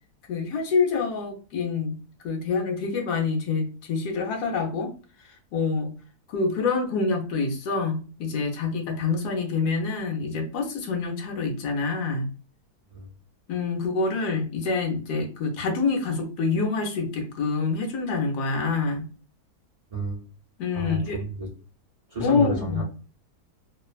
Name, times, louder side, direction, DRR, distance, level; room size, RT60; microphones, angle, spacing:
voice 1, 0.3-2.0 2.2-4.9 5.2-5.9 6.3-12.3 13.5-19.1 20.6-21.2 22.2-22.8, left 4 dB, 75° left, 1 dB, 1.2 m, -26 dB
voice 2, 19.9-20.2 20.7-21.5 22.1-22.8, right 1 dB, 65° right, -6 dB, 0.3 m, -31 dB
3.0 x 2.1 x 2.4 m, 0.36 s
omnidirectional pair, 1.7 m